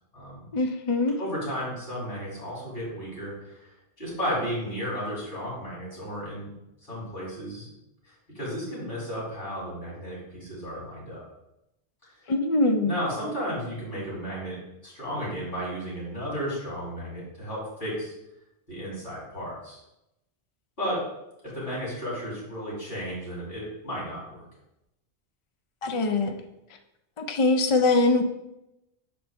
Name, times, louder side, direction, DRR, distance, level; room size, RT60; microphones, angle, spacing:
voice 1, 0.5-1.2 12.3-12.9 25.8-26.4 27.2-28.2, left 3 dB, 45° left, 6 dB, 0.4 m, -23 dB
voice 2, 1.2-6.5 6.8-7.7 8.0-11.2 12.0-12.1 12.8-18.1 18.7-19.8 20.8-21.0 21.4-24.4, equal, 65° left, -6 dB, 2.8 m, -34 dB
6.4 x 4.3 x 3.4 m, 0.89 s
omnidirectional pair, 1.1 m